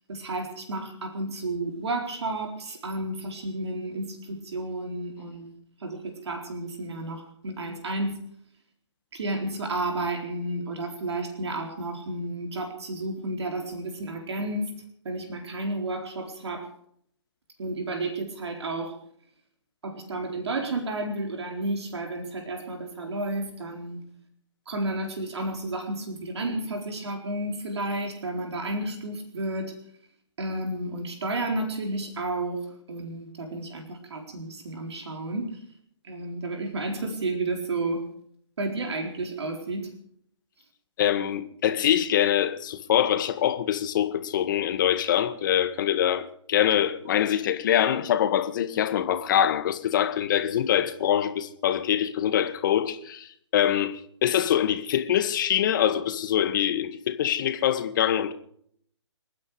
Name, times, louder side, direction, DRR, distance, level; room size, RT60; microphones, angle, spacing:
voice 1, 0.1-5.5 5.8-8.2 9.1-14.7 15.0-16.7 17.6-18.9 19.8-24.0 24.7-29.7 30.4-35.6 36.0-38.0 38.6-39.9, right 2 dB, 60° right, 4.2 m, -32 dB
voice 2, 41.0-53.3 53.5-58.3, left 10 dB, 40° left, 1.8 m, -24 dB
29.5 x 9.8 x 5.0 m
figure-of-eight pair, 140°, 16 cm